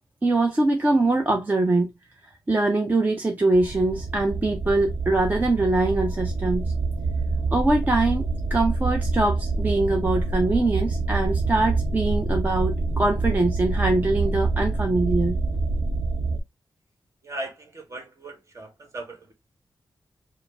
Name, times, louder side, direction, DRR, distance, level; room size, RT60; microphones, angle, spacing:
voice 1, 0.2-1.9 2.5-6.6 7.5-15.4, right 2 dB, 25° right, 0.6 m, -23 dB
sound 1, 3.5-16.4, right 3 dB, 70° right, 0.8 m, -26 dB
voice 2, 17.2-19.3, right 2 dB, 40° right, 1.4 m, -38 dB
4.8 x 2.1 x 3.3 m
wide cardioid pair, 120°, 7 cm